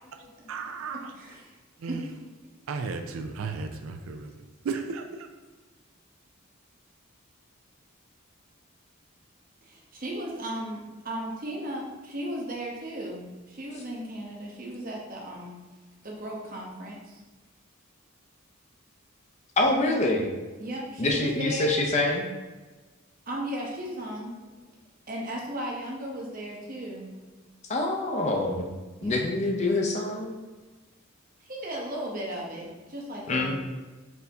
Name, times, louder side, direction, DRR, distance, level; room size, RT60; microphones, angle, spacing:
voice 1, 0.5-1.1 1.8-2.0 2.7-5.3, right 4 dB, 80° right, 6 dB, 0.4 m, -34 dB
voice 2, 1.1-1.5 1.9-2.0 9.7-15.6 16.0-17.2 20.6-21.8 23.3-24.3 25.1-27.1 29.0-29.2 31.4-33.5, right 1 dB, 45° right, -2 dB, 0.8 m, -36 dB
voice 3, 19.6-20.3 21.0-22.3 27.7-28.7 29.0-30.4 33.3-33.5, left 2 dB, 35° left, 1 dB, 0.5 m, -25 dB
4.3 x 2.7 x 3.3 m, 1.2 s
head